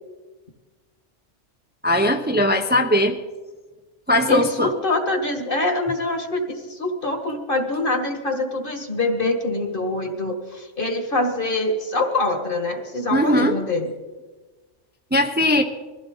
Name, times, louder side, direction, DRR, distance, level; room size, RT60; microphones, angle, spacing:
voice 1, 1.8-3.2 4.1-4.7 13.1-13.6 15.1-15.6, left 1 dB, 10° right, 4 dB, 0.7 m, -19 dB
voice 2, 4.3-13.9, left 2 dB, 45° left, 5 dB, 2.1 m, -24 dB
22.0 x 15.5 x 4.0 m, 1.2 s
omnidirectional pair, 1.2 m